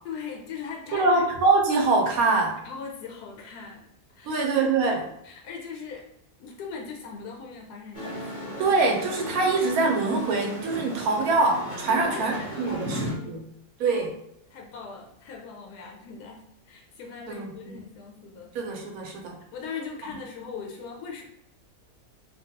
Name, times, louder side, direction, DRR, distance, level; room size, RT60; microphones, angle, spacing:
voice 1, 0.0-1.2 2.6-3.9 4.1-4.7 5.2-6.1 6.4-8.6 11.9-13.4 13.9-14.1 14.5-18.5 19.5-21.2, left 5 dB, 85° left, 0 dB, 1.2 m, -40 dB
voice 2, 0.9-2.6 4.2-5.1 8.6-13.4 13.8-14.1 17.3-17.8 18.5-19.4, right 3 dB, 70° right, 2 dB, 1.1 m, -24 dB
sound 1, 7.9-13.1, equal, 40° left, 0.5 m, -36 dB
2.9 x 2.3 x 2.7 m, 0.77 s
omnidirectional pair, 1.7 m